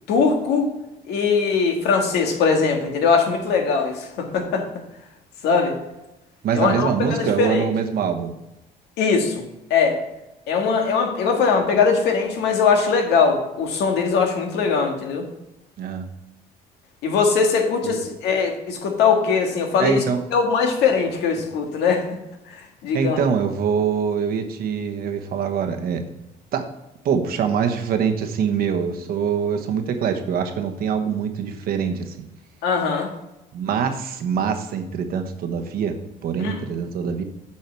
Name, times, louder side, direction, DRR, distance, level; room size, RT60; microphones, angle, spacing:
voice 1, 0.1-0.7 1.1-4.6 5.4-5.7 6.5-7.6 9.0-9.4 9.7-10.0 10.5-15.3 17.0-20.0 20.3-22.0 22.5-23.2 32.6-33.1 36.4-36.6, left 5 dB, 80° left, 3 dB, 1.8 m, -21 dB
voice 2, 6.4-8.3 15.8-16.1 17.8-18.0 19.8-20.2 22.9-26.0 26.5-26.7 27.0-32.1 33.5-36.0 36.2-37.2, right 7 dB, 65° right, 6 dB, 1.2 m, -24 dB
8.6 x 5.6 x 4.5 m, 0.94 s
cardioid pair, 110°, 17 cm